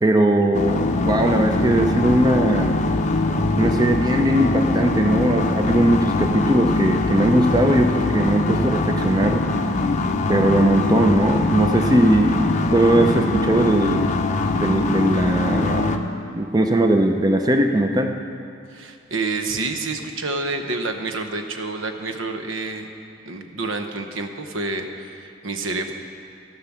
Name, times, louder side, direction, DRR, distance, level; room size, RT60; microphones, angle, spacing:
voice 1, 0.0-2.8 3.6-9.4 10.3-14.1 14.6-18.1, right 1 dB, 20° right, 4 dB, 0.5 m, -19 dB
sound 1, 0.5-16.0, left 2 dB, 35° left, 0.6 m, -22 dB
voice 2, 18.7-22.9 23.3-25.9, right 3 dB, 80° right, 6 dB, 0.9 m, -28 dB
15.5 x 5.7 x 7.2 m, 2.5 s
head